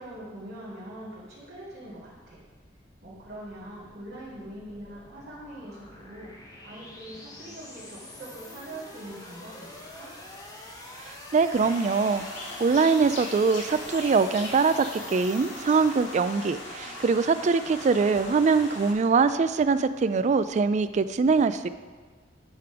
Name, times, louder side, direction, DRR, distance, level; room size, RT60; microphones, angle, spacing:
voice 1, 0.0-2.4 3.0-10.1, right 1 dB, 65° right, -11 dB, 2.3 m, -43 dB
sound 1, 2.4-20.4, left 2 dB, 20° left, 1.0 m, -47 dB
voice 2, 11.3-12.2 12.6-21.7, right 4 dB, 40° right, 12 dB, 0.3 m, -23 dB
sound 2, 11.5-18.9, left 1 dB, 90° left, 2.1 m, -40 dB
10.0 x 3.4 x 5.9 m, 1.5 s
head